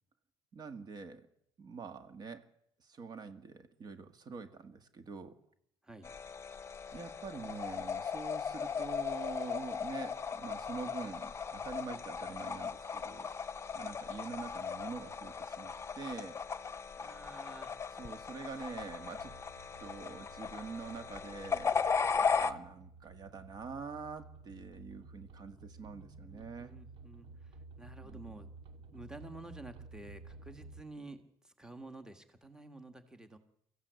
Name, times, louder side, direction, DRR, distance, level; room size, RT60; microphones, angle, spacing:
voice 1, 0.5-1.3 1.6-2.5 2.8-5.4 6.9-13.3 13.7-16.4 18.0-19.4 19.8-21.8 22.4-26.8 28.0-28.2, right 4 dB, 40° right, 9 dB, 1.7 m, -45 dB
sound 1, 6.0-22.5, left 6 dB, 25° left, 1.0 m, -37 dB
voice 2, 17.0-17.8 25.8-28.5 28.9-33.4, right 2 dB, 5° right, 8 dB, 1.6 m, -51 dB
sound 2, 18.8-30.8, right 3 dB, 60° right, 2.2 m, -54 dB
24.0 x 15.0 x 8.2 m, 0.75 s
cardioid pair, 130°, 10 cm